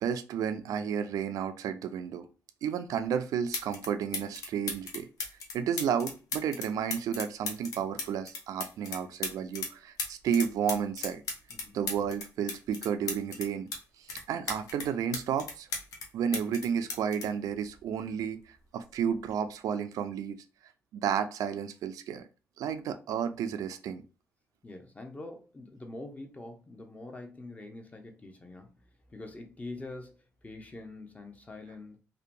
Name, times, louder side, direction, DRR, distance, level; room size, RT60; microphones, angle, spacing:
voice 1, 0.0-2.3 2.6-5.1 5.5-11.2 11.7-13.7 14.0-15.7 16.1-18.4 18.7-20.4 20.9-22.3 22.6-24.0, right 8 dB, 80° right, 0.3 m, -32 dB
sound 1, 3.0-3.1 3.5-3.9 4.1-9.7 10.0-13.8 14.1-16.1 16.3-18.2 19.1-19.3, left 4 dB, 80° left, 0.6 m, -36 dB
voice 2, 24.6-28.8 29.1-30.1 30.4-32.0, left 2 dB, 25° left, 0.7 m, -44 dB
2.7 x 2.2 x 2.5 m
cardioid pair, 65°, 6 cm